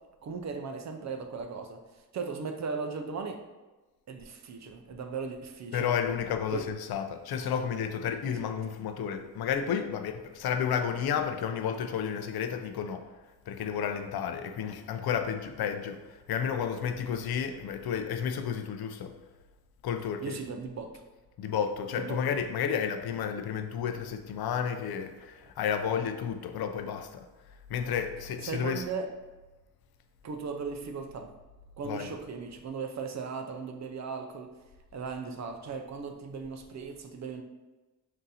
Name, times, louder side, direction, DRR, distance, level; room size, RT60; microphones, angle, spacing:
voice 1, 0.2-3.4 4.1-6.0 6.5-6.7 8.2-8.3 20.2-21.0 21.9-22.2 28.4-29.1 30.2-31.3 31.8-34.5 34.9-37.4, right 5 dB, 50° right, 0.5 m, -37 dB
voice 2, 5.7-13.1 13.5-19.1 19.8-20.4 21.4-27.3 27.7-28.8 31.8-32.1, left 7 dB, 75° left, 0.5 m, -31 dB
3.7 x 2.7 x 4.0 m
wide cardioid pair, 130°, 37 cm